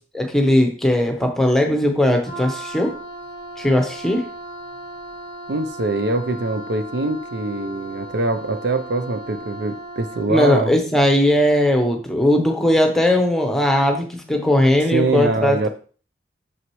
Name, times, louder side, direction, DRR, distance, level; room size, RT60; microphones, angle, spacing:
voice 1, 0.1-3.0 3.6-4.3 10.3-15.7, left 1 dB, ahead, 3 dB, 0.9 m, -18 dB
Wind instrument woodwind instrument, 2.2-10.4, right 1 dB, 55° right, 1.7 m, -36 dB
voice 2, 5.5-10.8 14.9-15.7, right 2 dB, 80° right, 9 dB, 0.6 m, -23 dB
6.2 x 6.1 x 3.1 m, 0.40 s
head